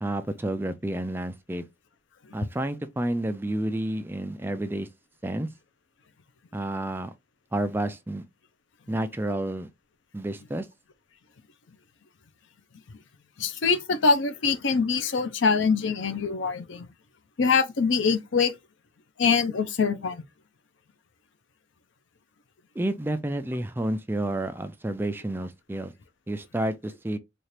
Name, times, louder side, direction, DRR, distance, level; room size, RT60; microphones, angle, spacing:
voice 1, 0.0-1.6 2.3-4.9 5.2-5.5 6.5-7.1 7.5-8.2 8.9-9.7 10.1-10.7 22.8-25.9 26.3-27.2, right 1 dB, 10° right, 0.3 m, -30 dB
voice 2, 13.4-16.9 17.4-18.5 19.2-20.2, left 5 dB, 80° left, 0.6 m, -24 dB
4.2 x 2.4 x 3.2 m
head